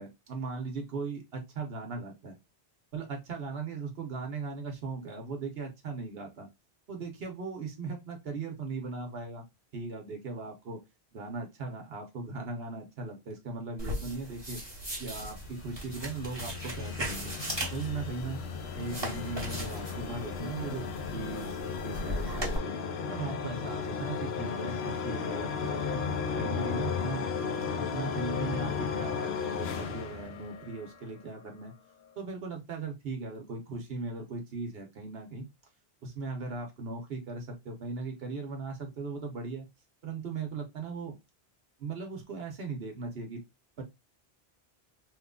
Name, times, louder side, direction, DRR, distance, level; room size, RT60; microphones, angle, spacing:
voice 1, 0.0-2.4 2.9-6.5 6.9-9.4 9.7-10.8 11.1-17.3 17.7-18.4 18.8-22.7 23.1-26.0 26.4-27.3 27.6-31.7 32.2-35.4 36.0-39.7 40.0-41.2 41.8-43.4 43.8-43.9, right 3 dB, 75° right, 3 dB, 1.1 m, -38 dB
sound 1, 13.8-22.6, equal, 25° right, 1.3 m, -39 dB
sound 2, 15.0-31.1, left 6 dB, 80° left, 0.8 m, -35 dB
3.1 x 2.3 x 3.6 m, 0.21 s
omnidirectional pair, 1.0 m